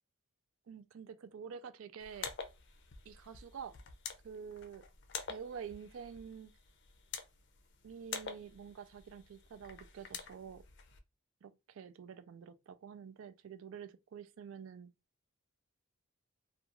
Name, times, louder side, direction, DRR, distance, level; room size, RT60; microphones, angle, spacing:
voice 1, 0.7-2.3 3.1-3.8 4.2-4.8 5.3-6.5 7.8-10.6 11.4-14.9, right 7 dB, 70° right, 0.3 m, -48 dB
sound 1, 2.0-11.0, left 6 dB, 55° left, 0.5 m, -48 dB
2.4 x 2.3 x 2.8 m
head